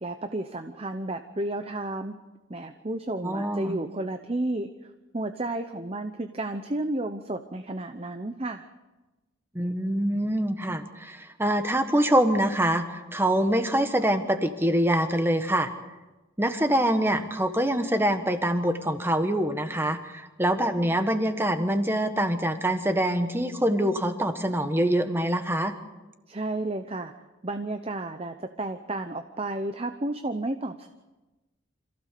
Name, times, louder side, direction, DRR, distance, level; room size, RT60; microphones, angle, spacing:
voice 1, 0.0-2.2 2.5-8.7 26.3-27.1 27.4-30.9, right 2 dB, 30° right, 7 dB, 0.8 m, -32 dB
voice 2, 3.2-3.8 9.5-15.7 16.4-25.7, right 1 dB, 10° right, 7 dB, 1.3 m, -25 dB
26.5 x 15.5 x 6.8 m, 1.1 s
head